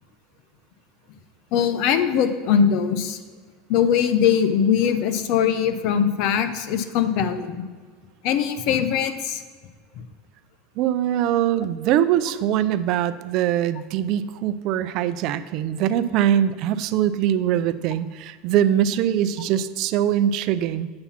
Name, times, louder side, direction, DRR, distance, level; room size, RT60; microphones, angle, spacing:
voice 1, 1.5-3.2 3.7-7.6 8.2-9.4, left 8 dB, 60° left, 10 dB, 0.8 m, -21 dB
voice 2, 10.8-20.9, right 10 dB, 55° right, 14 dB, 0.5 m, -22 dB
8.8 x 7.0 x 5.7 m, 1.5 s
supercardioid pair, 110°, 0 cm